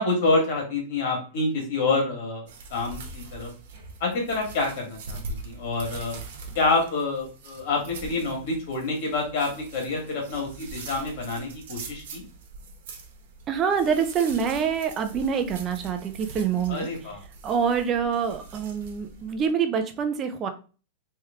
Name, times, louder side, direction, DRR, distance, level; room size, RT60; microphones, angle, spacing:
voice 1, 0.0-3.5 4.0-6.2 6.6-12.2 16.7-17.2, left 3 dB, 50° left, 0 dB, 1.8 m, -27 dB
sound 1, 2.5-19.5, right 3 dB, 60° right, 1.1 m, -42 dB
voice 2, 13.5-16.9 17.4-20.5, right 7 dB, 20° right, 7 dB, 0.5 m, -26 dB
3.2 x 3.2 x 3.6 m, 0.36 s
supercardioid pair, 170°, 0 cm